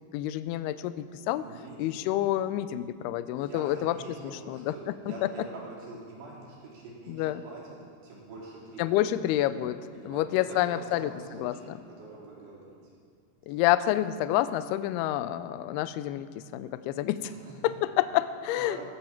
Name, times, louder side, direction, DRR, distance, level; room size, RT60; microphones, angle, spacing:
voice 1, 0.1-1.5 1.8-4.0 4.5-5.5 7.1-7.4 8.8-9.8 10.1-11.1 11.4-11.8 13.5-17.3 17.6-18.9, left 13 dB, 80° left, 13 dB, 2.4 m, -28 dB
voice 2, 1.3-1.8 3.4-7.6 8.0-9.1 9.9-12.7 17.2-17.5 18.5-18.9, right 3 dB, 75° right, -5 dB, 5.8 m, -45 dB
19.5 x 14.0 x 4.5 m, 2.3 s
omnidirectional pair, 4.9 m